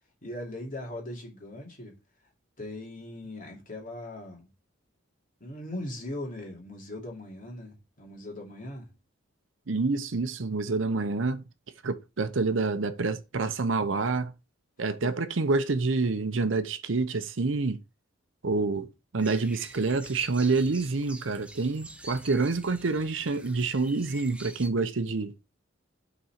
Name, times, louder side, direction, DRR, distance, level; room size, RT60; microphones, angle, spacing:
voice 1, 0.2-1.9 2.6-4.5 5.4-8.9 14.8-15.1, left 1 dB, 45° left, 2.5 m, -39 dB
voice 2, 9.7-11.4 11.8-14.3 14.8-17.8 18.4-18.9 19.1-25.3, right 3 dB, 70° right, 0.7 m, -27 dB
sound 1, 19.2-24.7, right 1 dB, 5° right, 0.7 m, -46 dB
5.6 x 4.1 x 5.8 m
head